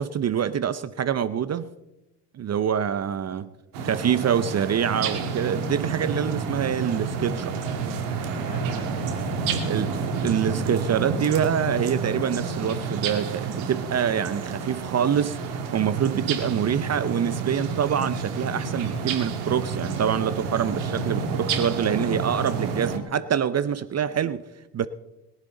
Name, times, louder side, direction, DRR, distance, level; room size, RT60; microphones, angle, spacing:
voice 1, 0.0-1.7 2.3-3.5 3.8-7.6 9.7-9.9 10.2-24.4 24.7-24.9, right 8 dB, 30° right, 0.7 m, -25 dB
sound 1, 3.7-23.0, right 5 dB, 75° right, 2.4 m, -29 dB
voice 2, 8.4-10.3 22.6-23.0, left 3 dB, 55° left, 4.1 m, -45 dB
22.0 x 11.0 x 3.9 m
hypercardioid pair, 75°, 49 cm